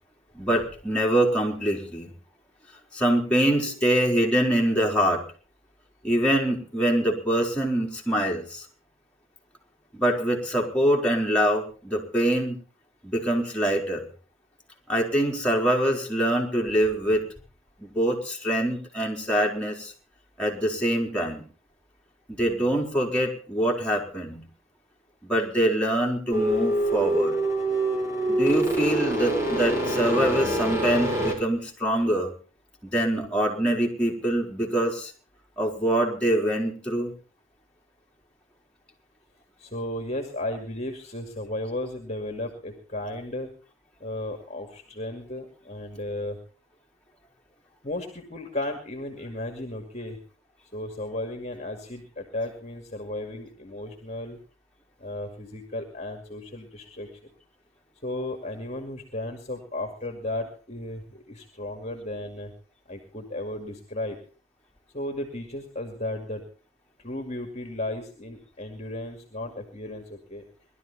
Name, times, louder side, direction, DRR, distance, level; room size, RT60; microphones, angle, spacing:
voice 1, 0.3-2.1 2.9-5.2 6.0-8.7 9.9-12.6 13.0-14.1 14.9-17.3 17.8-19.9 20.4-21.5 22.3-24.4 25.2-27.4 28.3-32.3 32.8-35.1 35.6-37.1, right 1 dB, 5° left, -3 dB, 4.0 m, -24 dB
sound 1, 26.3-31.3, right 1 dB, 15° right, 4.3 m, -25 dB
voice 2, 39.6-43.5 44.0-46.4 47.8-50.2 50.7-54.4 55.0-57.2 58.0-62.5 62.9-64.2 64.9-66.4 67.0-70.4, left 1 dB, 30° left, 4 dB, 2.3 m, -34 dB
20.5 x 12.5 x 4.2 m, 0.38 s
head